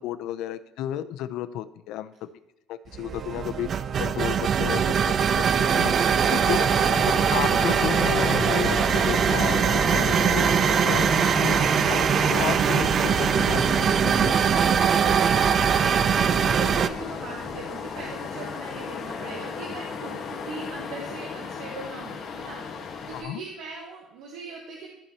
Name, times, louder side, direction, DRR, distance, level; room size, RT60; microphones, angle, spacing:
voice 1, 0.0-2.1 2.7-3.7 4.0-5.2 5.6-5.9 6.3-6.6 7.0-10.5 10.8-11.6 11.9-13.6 14.0-14.4 23.2-23.4, left 12 dB, 75° left, 11 dB, 0.6 m, -32 dB
sound 1, 2.9-16.9, right 7 dB, 40° right, 0.4 m, -22 dB
sound 2, 4.9-11.5, left 3 dB, 15° left, 0.6 m, -43 dB
sound 3, 5.4-23.2, left 5 dB, 45° left, 1.4 m, -34 dB
voice 2, 14.8-24.9, right 3 dB, 80° right, -1 dB, 1.6 m, -40 dB
15.0 x 5.6 x 2.9 m, 0.93 s
cardioid pair, 140°, 0 cm